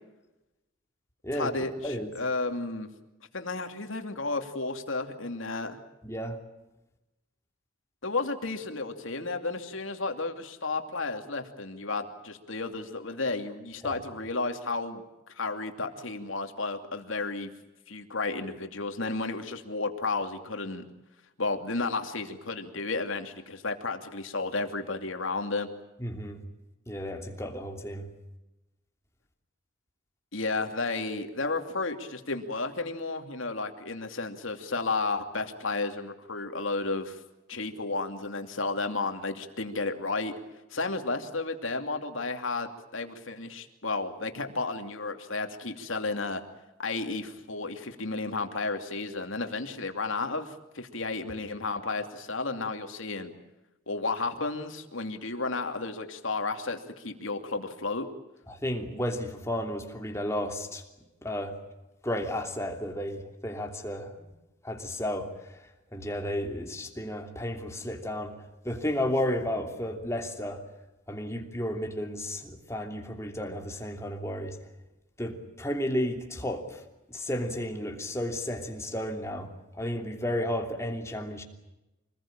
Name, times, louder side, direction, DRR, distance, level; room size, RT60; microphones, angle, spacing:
voice 1, 1.3-1.7 2.1-2.9 3.3-5.8 8.0-15.0 15.3-17.5 17.9-20.8 21.4-25.7 30.3-37.2 37.5-40.3 40.7-46.4 46.8-53.3 53.9-58.1, left 3 dB, 75° left, 2.7 m, -32 dB
voice 2, 1.8-2.1 6.0-6.4 13.8-14.0 26.0-26.4 26.9-28.1 58.5-60.8 61.2-61.6 62.0-64.3 64.6-70.6 71.1-74.6 75.2-76.8 77.1-81.4, left 1 dB, 15° left, 3.0 m, -33 dB
26.0 x 20.0 x 8.9 m
head